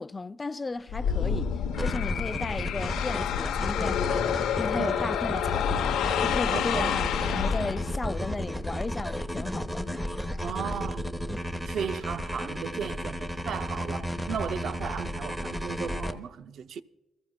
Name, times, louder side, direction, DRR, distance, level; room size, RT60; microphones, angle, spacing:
voice 1, 0.0-9.8, left 3 dB, 25° left, 0.4 m, -35 dB
sound 1, 0.9-8.1, left 8 dB, 85° left, 0.8 m, -28 dB
sound 2, 1.7-16.1, equal, 5° right, 1.1 m, -33 dB
voice 2, 4.8-5.1 6.5-7.0 10.4-11.1 11.7-16.8, right 7 dB, 65° right, 0.5 m, -35 dB
24.5 x 14.0 x 2.2 m
cardioid pair, 90°, 0 cm